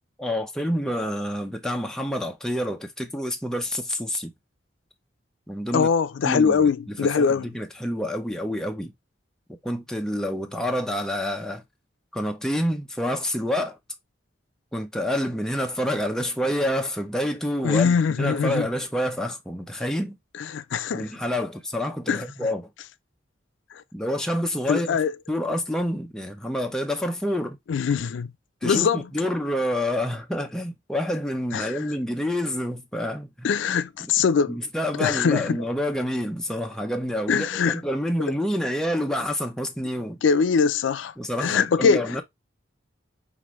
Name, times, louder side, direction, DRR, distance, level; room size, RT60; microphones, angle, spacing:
voice 1, 0.2-4.3 5.5-5.9 6.2-6.7 7.0-8.9 9.5-11.6 12.1-13.8 14.7-20.2 20.9-22.7 23.9-25.0 25.3-27.6 28.6-33.5 34.0-34.1 34.5-40.2 41.2-42.2, equal, 5° left, 0.6 m, -28 dB
voice 2, 5.7-7.5 17.6-18.7 20.4-21.1 22.1-22.2 23.7-23.8 24.7-25.1 27.7-28.3 28.6-29.1 31.5-31.8 33.4-34.6 35.0-35.6 37.3-37.8 40.2-41.1 41.4-42.2, left 6 dB, 80° left, 0.4 m, -22 dB
4.8 x 2.6 x 3.0 m
head